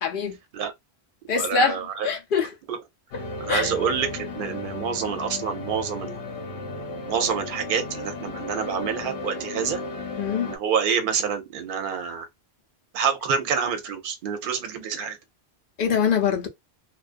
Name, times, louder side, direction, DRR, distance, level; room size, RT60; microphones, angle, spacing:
voice 1, 0.0-0.4 1.3-2.5 3.5-3.7 10.2-10.5 15.8-16.5, left 6 dB, 60° left, 0.7 m, -24 dB
voice 2, 1.4-2.1 2.7-2.8 3.4-6.2 7.1-9.8 10.4-12.3 12.9-15.2, right 7 dB, 60° right, 0.7 m, -27 dB
sound 1, 3.1-10.6, left 3 dB, 80° left, 1.0 m, -34 dB
2.4 x 2.2 x 2.4 m
omnidirectional pair, 1.1 m